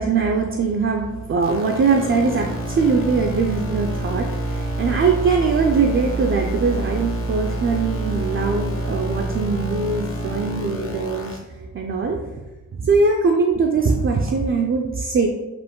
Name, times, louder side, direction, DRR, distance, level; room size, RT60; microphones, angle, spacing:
voice 1, 0.0-11.4 11.7-12.3 12.8-15.3, right 4 dB, 45° right, 0 dB, 0.4 m, -21 dB
sound 1, 1.4-11.4, right 1 dB, 45° left, 0.9 m, -27 dB
5.0 x 2.5 x 3.6 m, 1.1 s
wide cardioid pair, 140°, 31 cm